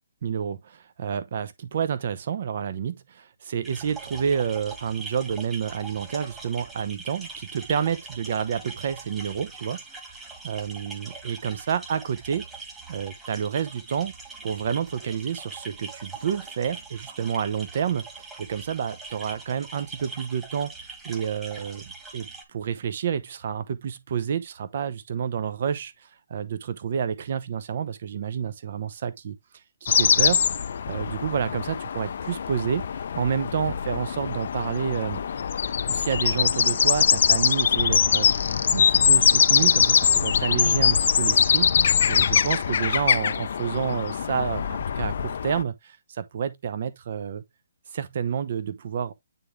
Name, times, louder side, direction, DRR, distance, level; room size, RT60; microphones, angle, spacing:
voice 1, 0.2-10.1 10.4-12.5 12.9-14.1 14.4-20.7 21.0-29.4 29.8-30.4 30.9-35.2 35.9-47.4 47.9-49.1, right 7 dB, 50° right, 0.8 m, -29 dB
sound 1, 3.6-22.4, right 4 dB, 10° right, 1.6 m, -42 dB
sound 2, 29.9-45.6, left 7 dB, 55° left, 0.5 m, -22 dB
9.0 x 3.7 x 3.2 m
hypercardioid pair, 145°, 0 cm